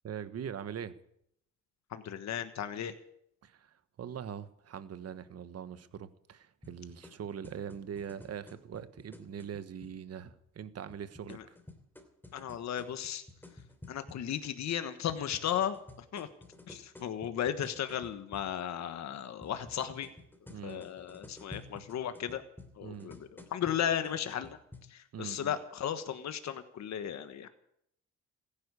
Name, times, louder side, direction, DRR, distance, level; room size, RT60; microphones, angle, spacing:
voice 1, 0.0-0.9 3.4-11.6 20.5-20.8 22.8-23.1 25.1-25.6, right 8 dB, 55° right, 1.3 m, -42 dB
voice 2, 1.9-2.9 11.3-11.4 12.3-13.2 13.9-15.8 16.1-16.3 16.7-20.1 20.6-22.4 22.8-24.6 24.9-27.5, left 9 dB, 65° left, 1.4 m, -35 dB
sound 1, 6.6-9.9 10.9-14.2 15.1-18.6 19.4-24.8, left 2 dB, 5° left, 3.0 m, -52 dB
15.5 x 10.5 x 8.4 m
cardioid pair, 90°, 30 cm